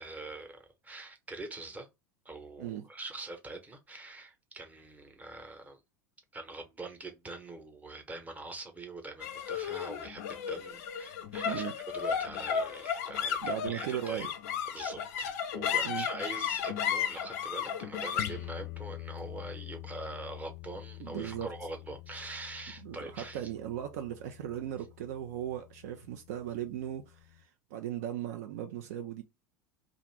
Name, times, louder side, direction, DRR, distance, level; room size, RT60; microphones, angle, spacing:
voice 1, 0.0-1.9 2.2-5.8 6.3-14.3 14.7-23.5, right 2 dB, 15° right, 0.9 m, -44 dB
sound 1, 9.2-25.8, left 8 dB, 60° left, 0.4 m, -36 dB
voice 2, 13.4-14.3 15.8-16.1 21.0-21.5 22.8-29.2, right 11 dB, 60° right, 0.4 m, -37 dB
2.5 x 2.4 x 3.1 m
figure-of-eight pair, 75°, 9 cm